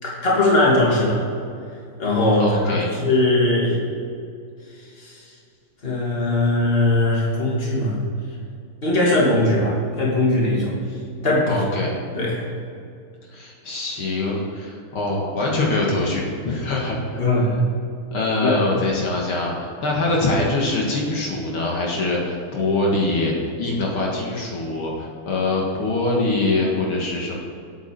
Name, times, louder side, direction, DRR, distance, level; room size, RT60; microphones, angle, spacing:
voice 1, 0.0-1.2 2.0-3.8 5.0-5.1 5.8-8.0 8.8-10.8 11.2-11.6 12.1-12.5 17.1-17.6 18.4-18.6, left 1 dB, 25° left, -4 dB, 2.8 m, -20 dB
voice 2, 2.4-2.9 11.5-12.0 13.3-17.2 18.1-27.4, left 2 dB, 70° left, -2 dB, 2.7 m, -23 dB
9.6 x 8.8 x 6.9 m, 2.4 s
omnidirectional pair, 2.4 m